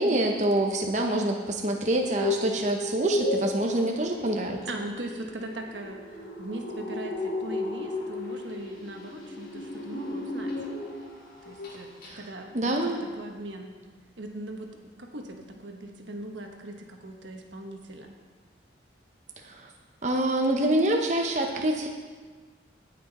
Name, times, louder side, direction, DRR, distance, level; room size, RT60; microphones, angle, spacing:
voice 1, 0.0-4.6 12.1-12.2 12.5-13.0 19.4-19.7 20.0-21.9, right 1 dB, 40° right, 2 dB, 0.8 m, -26 dB
sound 1, 2.0-11.1 11.4-11.8 12.0-12.1, left 2 dB, 55° left, 2.5 m, -34 dB
voice 2, 4.6-10.5 11.4-13.7 14.2-18.1, right 1 dB, 90° right, 3 dB, 1.3 m, -40 dB
18.0 x 6.1 x 4.2 m, 1.4 s
head